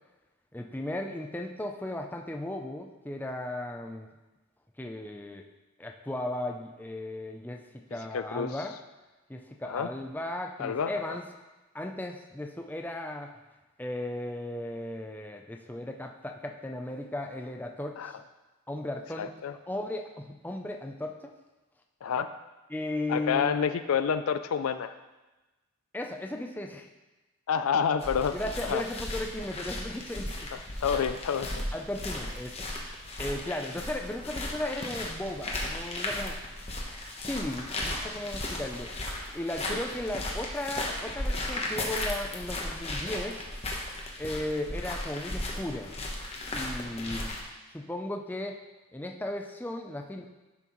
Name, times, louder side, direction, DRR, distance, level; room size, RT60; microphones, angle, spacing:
voice 1, 0.5-4.1 4.8-5.4 5.8-8.7 9.3-11.2 11.7-13.4 13.8-18.2 18.7-19.3 19.7-21.3 22.7-23.5 25.9-26.9 28.3-30.3 31.7-32.6 33.2-36.4 37.2-38.9 39.3-43.5 44.2-45.9 46.5-47.4 47.7-48.6 48.9-50.3, left 1 dB, 10° left, 3 dB, 0.4 m, -36 dB
voice 2, 8.1-8.5 9.6-9.9 10.6-11.2 18.0-18.1 19.2-19.5 22.0-22.3 23.1-24.9 27.5-28.4 28.6-28.8 30.5-31.5 39.7-39.8, left 7 dB, 75° left, 11 dB, 0.4 m, -28 dB
sound 1, 28.0-47.4, left 1 dB, 30° left, 1.0 m, -35 dB
11.0 x 5.8 x 3.1 m, 1.1 s
head